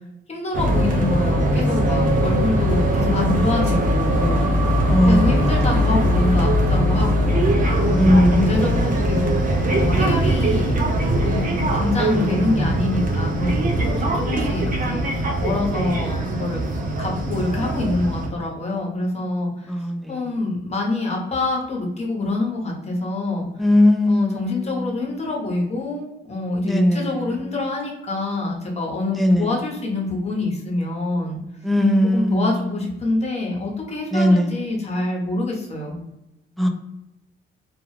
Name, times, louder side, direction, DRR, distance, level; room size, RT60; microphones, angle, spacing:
voice 1, 0.3-4.5 5.0-10.8 11.2-16.6 17.0-23.5 24.1-31.4 32.1-36.0, left 2 dB, 35° left, -1 dB, 1.0 m, -26 dB
sound 1, 0.5-18.3, right 1 dB, 40° right, 0.6 m, -21 dB
voice 2, 4.8-5.5 7.9-8.7 19.7-20.4 23.6-25.1 26.6-27.4 29.1-29.5 31.6-32.6 34.1-34.5 36.6-36.7, left 1 dB, ahead, 3 dB, 0.4 m, -19 dB
2.4 x 2.3 x 3.1 m, 0.90 s
cardioid pair, 90°, 20 cm